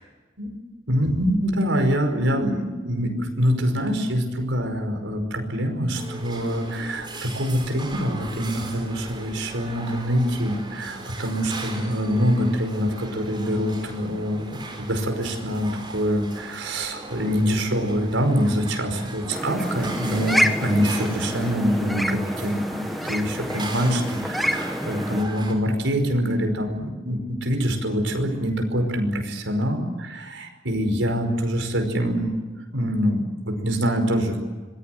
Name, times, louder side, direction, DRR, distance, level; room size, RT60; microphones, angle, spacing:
voice 1, 0.9-32.4 32.7-34.4, equal, 75° right, 5 dB, 5.3 m, -25 dB
sound 1, 5.9-25.5, right 2 dB, 25° right, 4.8 m, -38 dB
sound 2, 19.3-25.2, equal, ahead, 1.4 m, -28 dB
26.5 x 21.0 x 8.0 m, 1.3 s
head